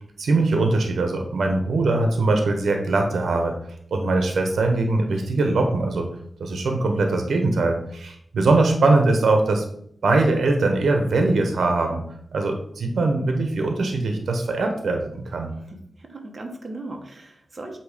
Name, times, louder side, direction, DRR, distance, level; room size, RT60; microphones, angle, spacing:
voice 1, 0.2-3.5 3.9-6.1 6.4-9.6 10.0-12.0 12.3-15.5, right 2 dB, 90° right, 4 dB, 1.0 m, -21 dB
voice 2, 15.6-17.8, right 2 dB, 30° right, 2 dB, 1.1 m, -38 dB
8.1 x 3.1 x 5.0 m, 0.67 s
wide cardioid pair, 180°, 0 cm